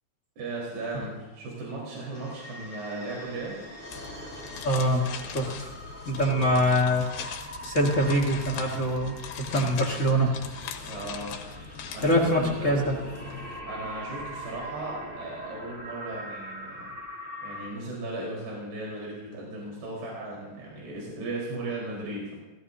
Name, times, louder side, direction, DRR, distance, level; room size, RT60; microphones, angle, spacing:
voice 1, 0.4-3.6 6.3-6.6 10.9-11.3 11.9-12.8 13.7-16.9 17.4-22.3, right 2 dB, 75° right, -4 dB, 6.3 m, -36 dB
sound 1, 2.1-17.7, equal, 5° left, 4.3 m, -42 dB
sound 2, 3.9-13.6, left 7 dB, 80° left, 3.3 m, -41 dB
voice 2, 4.6-5.1 5.3-5.7 6.0-10.3 12.0-13.0, equal, 40° left, 0 dB, 1.1 m, -24 dB
29.0 x 17.5 x 2.8 m, 1.1 s
omnidirectional pair, 4.7 m